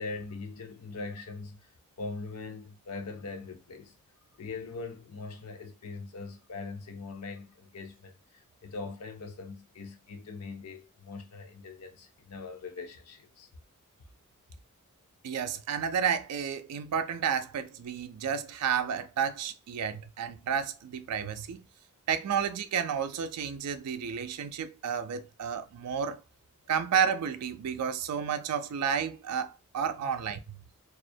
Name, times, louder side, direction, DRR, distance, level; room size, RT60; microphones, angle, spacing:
voice 1, 0.0-1.7 2.0-3.9 4.4-13.5 30.0-30.1, left 3 dB, 80° left, 0.5 m, -41 dB
voice 2, 15.2-21.6 22.1-26.2 26.7-30.6, right 7 dB, 90° right, 0.4 m, -31 dB
2.3 x 2.1 x 2.6 m
head